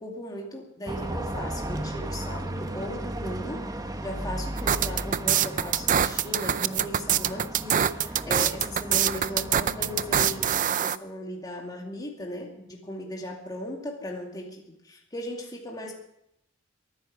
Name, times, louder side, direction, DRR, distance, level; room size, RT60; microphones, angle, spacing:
voice 1, 0.0-3.7 4.0-15.9, left 1 dB, 20° left, 0 dB, 2.5 m, -37 dB
sound 1, 0.9-10.7, right 1 dB, 20° right, 1.1 m, -35 dB
sound 2, 4.6-11.0, right 9 dB, 40° right, 0.5 m, -24 dB
22.5 x 9.8 x 6.0 m, 0.79 s
head